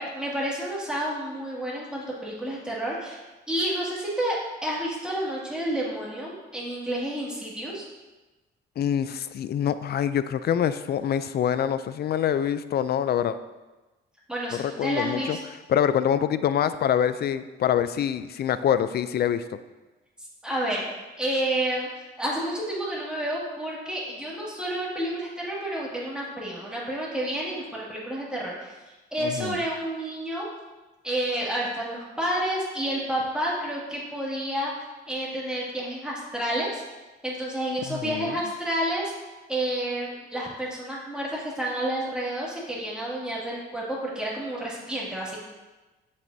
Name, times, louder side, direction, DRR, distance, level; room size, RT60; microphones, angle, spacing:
voice 1, 0.0-3.2 3.5-7.8 14.3-15.4 20.2-20.9 21.2-28.7 29.1-30.5 31.0-34.7 35.1-36.8 37.2-39.1 39.5-45.4, right 1 dB, 5° right, -6 dB, 2.3 m, -30 dB
voice 2, 8.8-13.4 14.5-15.4 15.7-19.4 29.2-29.6 37.9-38.4, left 9 dB, 55° left, 13 dB, 0.4 m, -25 dB
7.6 x 7.4 x 2.7 m, 1.2 s
cardioid pair, 90°, 20 cm